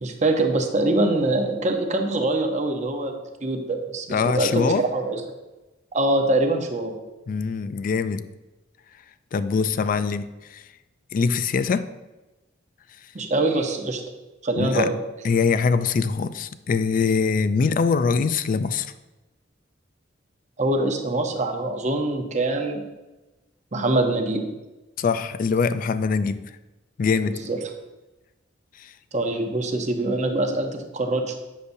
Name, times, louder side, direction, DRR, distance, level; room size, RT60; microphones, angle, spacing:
voice 1, 0.0-5.2 5.9-7.0 13.1-14.0 14.4-14.9 20.6-22.9 23.7-24.4 27.3-27.6 29.1-31.4, right 2 dB, 40° right, 4 dB, 0.7 m, -24 dB
voice 2, 4.1-4.8 7.3-8.2 9.3-10.6 11.1-11.9 14.6-14.9 15.2-18.9 25.0-26.4 27.0-27.4 28.8-28.9, left 5 dB, 45° left, 13 dB, 0.3 m, -23 dB
8.2 x 6.6 x 2.6 m, 1.1 s
head